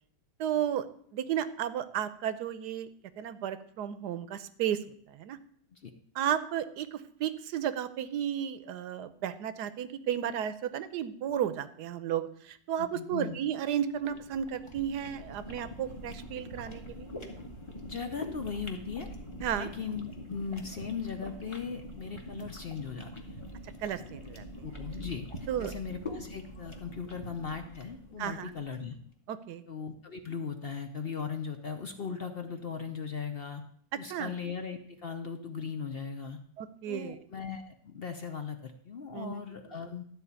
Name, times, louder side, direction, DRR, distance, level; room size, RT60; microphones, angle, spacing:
voice 1, 0.4-0.9 1.1-2.9 3.2-4.8 5.1-5.4 6.1-17.1 19.4-19.7 23.8-24.4 25.5-25.7 28.2-28.5 29.3-29.6 34.1-34.3 36.6-37.2 39.1-39.4, right 10 dB, 70° right, 13 dB, 1.3 m, -33 dB
voice 2, 12.8-13.4 17.8-19.1 19.5-23.4 24.6-28.9 29.7-33.6 33.9-36.4 36.9-40.0, left 6 dB, 50° left, 6 dB, 0.7 m, -38 dB
sound 1, 13.7-28.9, left 1 dB, 20° left, 1.3 m, -44 dB
12.5 x 4.3 x 8.2 m, 0.62 s
omnidirectional pair, 1.9 m